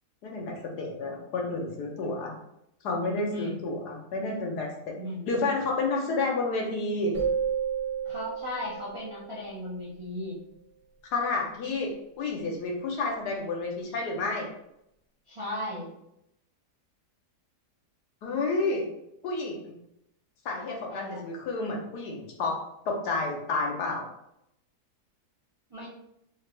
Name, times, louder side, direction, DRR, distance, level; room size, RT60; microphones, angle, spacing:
voice 1, 0.2-2.3 2.8-5.0 5.3-7.1 11.1-11.9 12.2-14.5 18.2-18.9 19.2-19.6 20.4-22.6 22.9-24.0, left 3 dB, 75° left, 0 dB, 1.4 m, -30 dB
voice 2, 3.3-3.6 5.0-5.3 8.0-10.4 15.3-15.9 20.9-21.2 25.7-25.9, left 1 dB, 30° right, -7 dB, 0.5 m, -36 dB
sound 1, 7.1-9.8, right 7 dB, 80° right, 1.5 m, -32 dB
4.5 x 2.5 x 3.0 m, 0.79 s
omnidirectional pair, 1.7 m